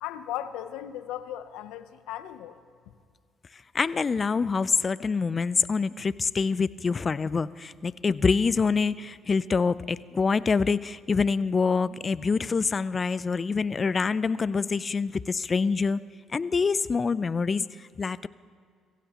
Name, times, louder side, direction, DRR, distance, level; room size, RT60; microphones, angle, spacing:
voice 1, 0.0-2.6, left 11 dB, 85° left, 12 dB, 0.7 m, -36 dB
voice 2, 3.7-16.0 16.3-18.3, left 5 dB, 35° left, 18 dB, 0.5 m, -26 dB
24.0 x 16.0 x 3.0 m, 2.2 s
supercardioid pair, 65°, 0 cm